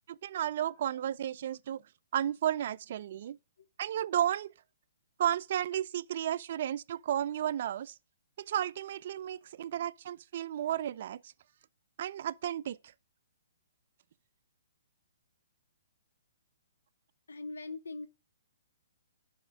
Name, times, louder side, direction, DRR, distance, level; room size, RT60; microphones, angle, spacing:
voice 1, 0.1-1.8 2.1-3.4 3.8-4.5 5.2-8.0 8.4-11.3 12.0-12.8, right 10 dB, 50° right, 0.3 m, -33 dB
voice 2, 17.3-18.1, left 3 dB, 75° left, 0.6 m, -42 dB
10.5 x 3.6 x 6.1 m
figure-of-eight pair, 125°, 0 cm